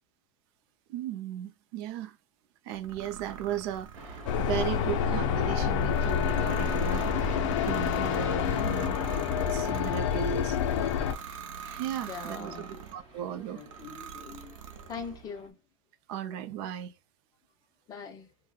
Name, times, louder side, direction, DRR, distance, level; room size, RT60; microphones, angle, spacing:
voice 1, 0.9-2.2 2.6-9.0 9.5-10.6 11.6-13.6 16.1-16.9, right 10 dB, 45° right, 0.4 m, -36 dB
sound 1, 2.7-13.0 13.6-15.2, right 7 dB, 90° right, 0.6 m, -43 dB
sound 2, 3.9-15.5, right 2 dB, 30° right, 0.8 m, -48 dB
sound 3, 4.3-11.1, left 8 dB, 70° left, 0.5 m, -28 dB
voice 2, 12.1-12.7 13.5-15.6 17.9-18.3, left 6 dB, 25° left, 0.6 m, -42 dB
3.6 x 2.1 x 2.3 m
supercardioid pair, 150°, 17 cm